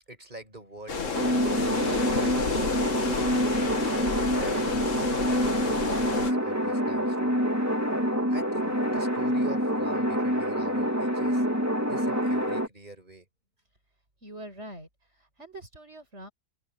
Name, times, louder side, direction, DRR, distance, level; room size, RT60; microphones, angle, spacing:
voice 1, 0.1-3.6 4.2-4.8 5.2-7.4 8.3-11.5 11.9-13.3, right 1 dB, 40° right, 7.8 m, -45 dB
sound 1, 0.9-6.3, left 5 dB, 85° left, 2.1 m, -31 dB
sound 2, 1.1-12.7, equal, 15° right, 3.3 m, -26 dB
voice 2, 14.2-16.3, right 1 dB, 65° right, 6.8 m, -44 dB
open air
omnidirectional pair, 1.3 m